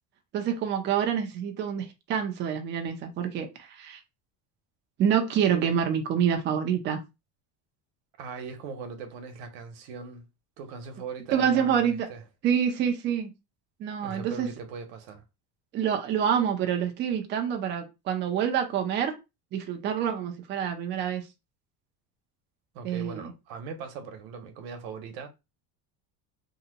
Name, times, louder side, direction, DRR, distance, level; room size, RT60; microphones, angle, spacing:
voice 1, 0.3-4.0 5.0-7.0 11.3-12.1 12.4-13.3 13.8-14.5 15.7-19.2 19.5-21.2 22.8-23.3, right 8 dB, 25° right, 0.4 m, -27 dB
voice 2, 8.2-10.3 10.6-12.2 14.0-15.2 22.7-25.3, right 5 dB, 75° right, 1.0 m, -40 dB
2.8 x 2.1 x 3.8 m
cardioid pair, 165°, 45 cm